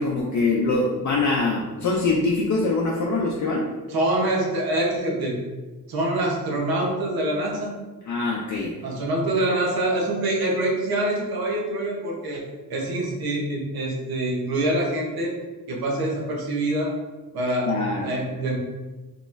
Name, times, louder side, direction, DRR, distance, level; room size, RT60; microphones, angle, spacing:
voice 1, 0.0-3.7 8.0-8.7 17.7-18.1, left 3 dB, 55° left, -2 dB, 0.5 m, -23 dB
voice 2, 3.9-5.4 5.9-7.7 8.8-12.4 12.7-15.4 15.7-16.9 17.3-17.7 18.0-18.6, right 1 dB, 80° right, -2 dB, 0.9 m, -25 dB
3.9 x 2.9 x 2.5 m, 1.2 s
cardioid pair, 105°, 36 cm